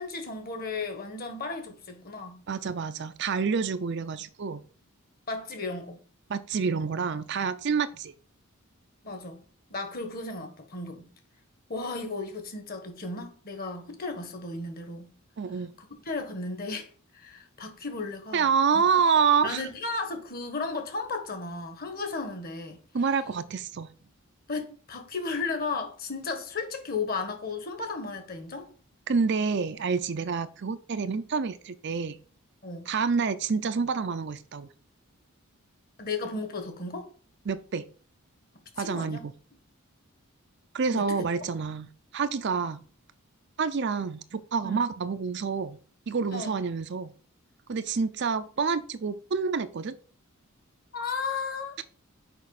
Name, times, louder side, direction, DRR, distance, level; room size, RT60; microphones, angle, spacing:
voice 1, 0.0-2.4 5.3-6.0 9.0-9.4 9.7-11.1 11.7-15.1 16.0-16.9 17.1-18.5 19.4-22.8 24.5-28.7 32.6-32.9 36.0-37.1 38.8-39.3 40.9-41.3 44.6-44.8 46.3-46.6 50.9-51.8, left 3 dB, 45° left, 1.5 m, -34 dB
voice 2, 2.5-4.6 6.3-8.1 15.4-15.7 18.3-19.6 22.9-23.9 29.1-32.2 32.9-34.7 37.5-37.8 38.8-39.3 40.7-41.9 42.1-42.8 43.6-45.8 46.1-47.1 47.7-50.0, right 5 dB, 55° right, 0.5 m, -27 dB
6.4 x 5.1 x 4.1 m
head